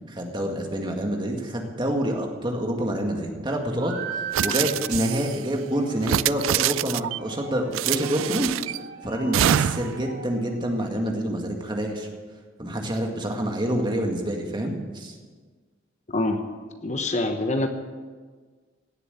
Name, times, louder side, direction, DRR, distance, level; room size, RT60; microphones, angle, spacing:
voice 1, 0.1-8.5 9.0-12.1 12.6-15.2, right 1 dB, 25° right, 2 dB, 1.9 m, -27 dB
sound 1, 3.7-10.8, right 4 dB, 60° right, 3.7 m, -39 dB
sound 2, 4.3-5.4 6.0-7.2 7.7-8.8 9.3-10.0, right 11 dB, 90° right, 0.3 m, -25 dB
voice 2, 16.1-16.4 16.8-17.7, left 2 dB, 35° left, 6 dB, 1.0 m, -25 dB
16.5 x 7.8 x 8.2 m, 1.5 s
head